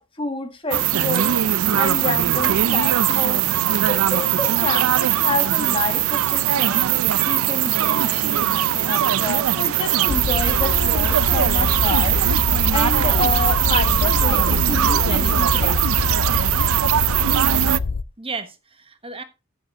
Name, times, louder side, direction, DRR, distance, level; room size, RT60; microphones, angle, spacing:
voice 1, 0.2-1.4 1.7-3.4 3.9-6.9 7.2-12.2 12.7-15.9, left 2 dB, 25° left, 1.3 m, -28 dB
sound 1, 0.7-17.8, right 11 dB, 90° right, 0.5 m, -20 dB
sound 2, 1.6-8.5 8.8-8.9 9.3-9.7, equal, 10° right, 5.3 m, -47 dB
sound 3, 10.1-18.0, left 4 dB, 90° left, 0.6 m, -24 dB
voice 2, 17.4-19.2, right 4 dB, 25° right, 1.2 m, -35 dB
14.5 x 7.5 x 3.6 m
head